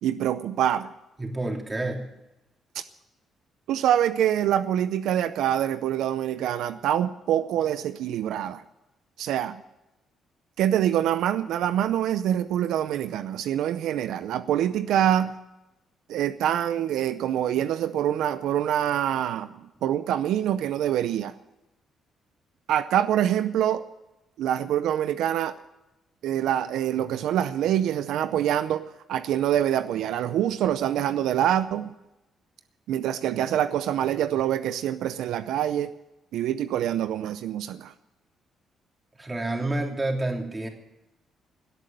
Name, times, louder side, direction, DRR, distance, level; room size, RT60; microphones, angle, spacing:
voice 1, 0.0-0.9 2.7-2.8 3.7-8.6 9.2-9.6 10.6-15.3 16.1-19.5 19.8-21.3 22.7-23.8 24.4-25.6 26.2-31.9 32.9-35.9 36.3-37.9, right 11 dB, 85° right, 12 dB, 0.6 m, -25 dB
voice 2, 1.2-2.0 39.2-40.7, right 2 dB, 20° right, 2 dB, 3.1 m, -29 dB
17.5 x 8.5 x 9.1 m, 0.95 s
cardioid pair, 90°, 0 cm